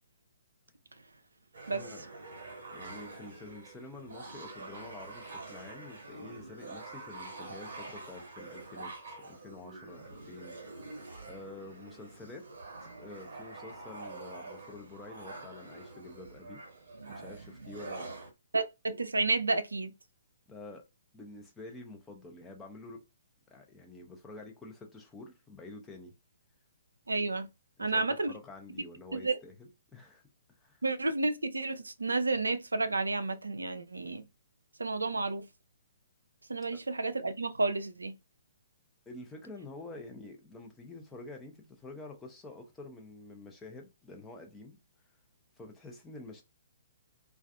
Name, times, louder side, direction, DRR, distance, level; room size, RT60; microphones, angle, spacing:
sound 1, 1.5-18.3, right 3 dB, 60° right, 0.9 m, -46 dB
voice 1, 1.7-2.0 2.7-11.0 11.3-12.5 12.8-16.6 17.1-18.1 20.5-20.8 21.1-23.0 23.5-26.1 27.8-30.2 30.6-30.8 39.1-44.8 45.6-46.4, left 2 dB, 10° left, 0.5 m, -48 dB
voice 2, 18.5-19.9 27.1-27.5 27.8-28.3 29.1-29.4 30.8-34.2 34.8-35.5 36.5-38.2, right 3 dB, 75° right, 0.3 m, -31 dB
2.4 x 2.3 x 2.4 m
figure-of-eight pair, 125°, 0 cm